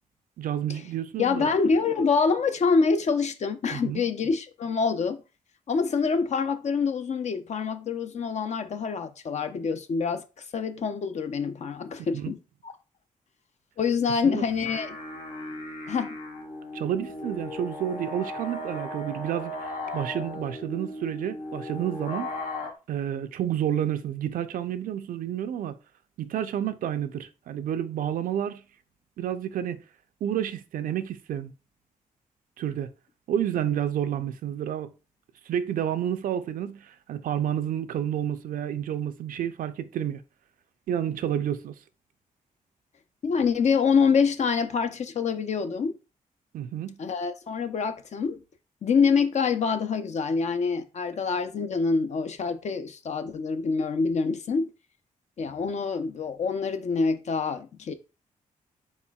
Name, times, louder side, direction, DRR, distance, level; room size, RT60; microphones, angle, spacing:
voice 1, 0.4-1.5 3.7-4.0 12.1-12.3 14.2-14.4 16.7-22.3 22.9-25.7 26.2-28.6 29.2-29.8 30.2-31.5 32.6-32.9 33.3-34.9 35.5-40.2 40.9-41.7 46.5-47.0, right 10 dB, 80° right, 0.5 m, -30 dB
voice 2, 1.2-5.2 5.7-10.2 10.5-12.4 12.6-12.7 13.8-15.0 15.9-16.2 43.2-46.0 47.0-48.4 48.8-54.7 55.4-57.9, left 5 dB, 55° left, 0.6 m, -26 dB
sound 1, 14.4-22.7, left 1 dB, 75° left, 1.1 m, -37 dB
4.2 x 4.1 x 2.3 m
cardioid pair, 75°, 14 cm